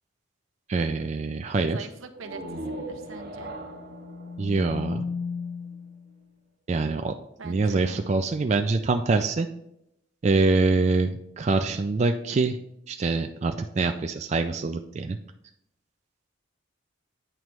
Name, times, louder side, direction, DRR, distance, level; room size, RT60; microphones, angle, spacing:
voice 1, 0.7-1.8 4.4-5.0 6.7-7.1 7.4-9.5 10.2-12.6 12.9-15.2, right 3 dB, 35° right, 6 dB, 0.3 m, -25 dB
voice 2, 1.6-3.5 7.4-8.0, right 4 dB, 80° right, 6 dB, 0.8 m, -43 dB
sound 1, 2.1-5.8, right 1 dB, 50° right, 1.0 m, -39 dB
sound 2, 3.6-6.1, left 5 dB, 30° left, 0.6 m, -35 dB
9.0 x 3.1 x 4.6 m, 0.78 s
head